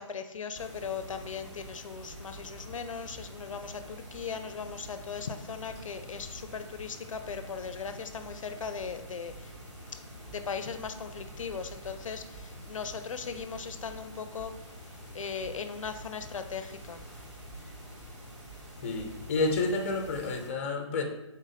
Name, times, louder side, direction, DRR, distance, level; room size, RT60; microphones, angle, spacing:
voice 1, 0.0-9.5 10.3-17.0, left 6 dB, 85° left, 9 dB, 0.4 m, -38 dB
sound 1, 0.5-20.5, equal, 10° right, 0.7 m, -46 dB
voice 2, 18.8-21.0, left 3 dB, 25° left, 3 dB, 0.5 m, -30 dB
3.8 x 2.5 x 4.0 m, 0.93 s
hypercardioid pair, 160°, 16 cm